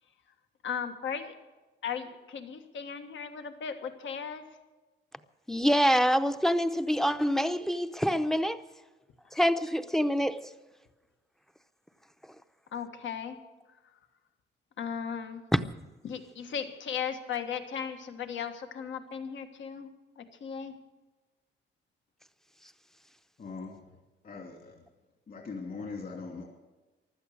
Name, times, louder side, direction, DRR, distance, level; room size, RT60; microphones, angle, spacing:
voice 1, 0.6-1.3 1.8-4.4 9.3-9.4 12.7-13.4 13.7-13.9 14.8-15.4 16.0-19.9 20.1-20.7 25.8-25.9, left 7 dB, 75° left, 1.5 m, -37 dB
voice 2, 5.5-8.6 9.3-10.4, equal, ahead, 0.6 m, -26 dB
voice 3, 23.4-23.8 24.2-24.7 25.3-26.4, left 4 dB, 50° left, 2.8 m, -40 dB
15.5 x 12.0 x 6.4 m
cardioid pair, 125°, 20 cm